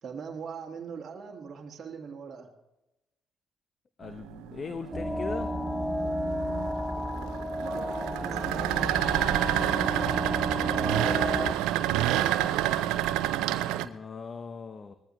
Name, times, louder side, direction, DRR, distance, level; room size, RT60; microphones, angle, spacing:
voice 1, 0.0-2.5 7.5-10.3 10.6-12.9, right 6 dB, 50° right, 0 dB, 1.8 m, -42 dB
voice 2, 4.0-5.5 13.8-14.9, left 5 dB, 45° left, 9 dB, 1.0 m, -39 dB
sound 1, 4.0-13.9, right 13 dB, 80° right, 0.6 m, -29 dB
sound 2, 4.9-11.5, left 1 dB, 5° left, 0.8 m, -32 dB
20.0 x 14.5 x 3.1 m, 0.96 s
hypercardioid pair, 50°, 0 cm